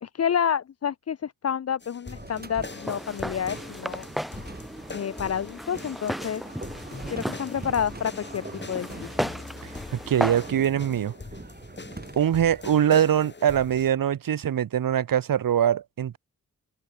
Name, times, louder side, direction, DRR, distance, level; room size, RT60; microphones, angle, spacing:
voice 1, 0.0-4.1 4.9-6.4 7.1-9.1, left 8 dB, 50° left, 0.6 m, -29 dB
sound 1, 1.8-13.9, left 4 dB, 30° left, 2.7 m, -43 dB
sound 2, 2.1-12.7, right 3 dB, 30° right, 5.6 m, -43 dB
Walk footsteps, 2.7-10.5, equal, ahead, 0.7 m, -35 dB
voice 2, 10.1-11.1 12.2-16.2, right 9 dB, 90° right, 0.9 m, -23 dB
open air
wide cardioid pair, 120°, 33 cm